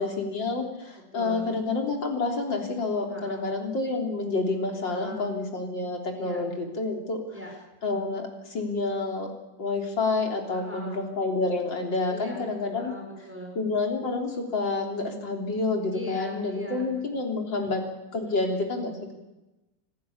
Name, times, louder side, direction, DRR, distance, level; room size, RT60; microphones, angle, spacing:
voice 1, 0.0-7.2 7.8-9.3 9.6-12.9 13.6-17.8 18.1-19.1, left 3 dB, 75° left, 2 dB, 4.2 m, -28 dB
voice 2, 1.1-1.6 3.1-3.5 4.9-5.3 6.2-6.4 7.3-7.5 10.5-11.0 12.1-13.6 15.9-16.9 17.6-17.7 18.2-18.5, equal, 5° right, 0 dB, 6.1 m, -40 dB
27.5 x 15.0 x 8.6 m, 1.0 s
omnidirectional pair, 2.1 m